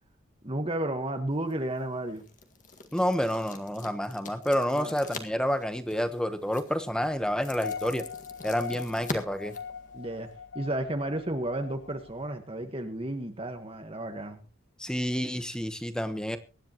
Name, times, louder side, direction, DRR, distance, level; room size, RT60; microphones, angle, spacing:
voice 1, 0.4-2.2 4.7-4.9 9.9-10.3 10.5-14.4, right 1 dB, 25° right, 5 dB, 1.4 m, -32 dB
sound 1, 1.3-10.4, left 3 dB, 40° left, 1.8 m, -44 dB
voice 2, 2.9-8.0 8.4-9.5 14.8-16.4, equal, 5° left, 10 dB, 1.1 m, -29 dB
sound 2, 7.5-12.3, left 6 dB, 55° left, 0.6 m, -41 dB
24.0 x 10.5 x 3.0 m, 0.32 s
head